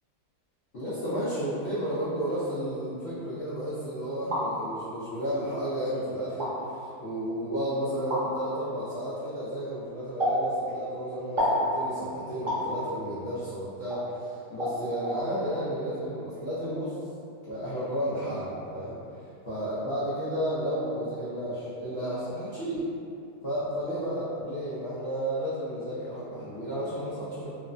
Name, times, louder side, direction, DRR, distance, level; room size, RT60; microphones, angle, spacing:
voice 1, 0.7-17.0 17.5-19.0 19.5-22.9 23.4-27.5, equal, 85° left, -11 dB, 0.5 m, -32 dB
sound 1, 4.0-4.5 5.3-5.4 6.3-6.5 8.1-8.2 10.2-10.4 11.4-11.6 12.5-12.7 13.9-14.0 14.6-14.7 15.0-15.2, left 1 dB, 35° right, 0.9 m, -27 dB
2.9 x 2.0 x 2.4 m, 2.6 s
omnidirectional pair, 1.8 m